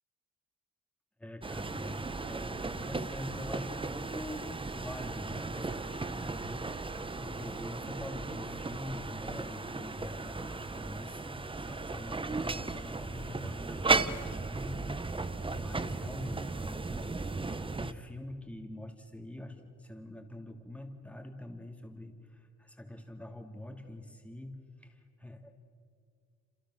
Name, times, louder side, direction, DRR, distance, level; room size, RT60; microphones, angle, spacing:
voice 1, 1.2-4.5 4.7-14.8 15.2-17.1 17.8-25.5, left 1 dB, 5° left, 3 dB, 3.0 m, -44 dB
sound 1, 1.4-17.9, right 3 dB, 15° right, 1.0 m, -36 dB
27.5 x 27.5 x 6.5 m, 2.3 s
cardioid pair, 90°, 30 cm